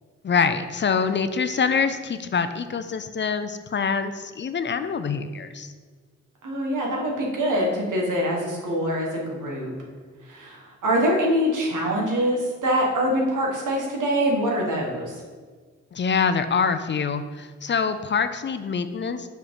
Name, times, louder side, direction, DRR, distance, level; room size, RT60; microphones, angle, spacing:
voice 1, 0.2-5.7 15.9-19.3, left 5 dB, 40° left, 10 dB, 0.4 m, -25 dB
voice 2, 6.4-9.7 10.2-15.2, equal, 90° right, -1 dB, 1.5 m, -24 dB
5.5 x 5.0 x 4.7 m, 1.5 s
cardioid pair, 95°, 30 cm